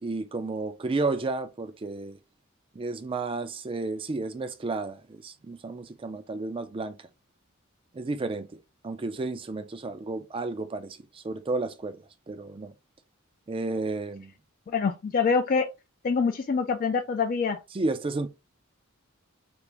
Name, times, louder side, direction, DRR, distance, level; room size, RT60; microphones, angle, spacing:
voice 1, 0.0-2.2 2.7-7.0 7.9-12.7 13.5-14.3 17.7-18.3, right 3 dB, 25° right, 0.4 m, -32 dB
voice 2, 14.7-15.7 16.0-17.6, left 5 dB, 45° left, 0.3 m, -25 dB
3.5 x 2.5 x 3.0 m
head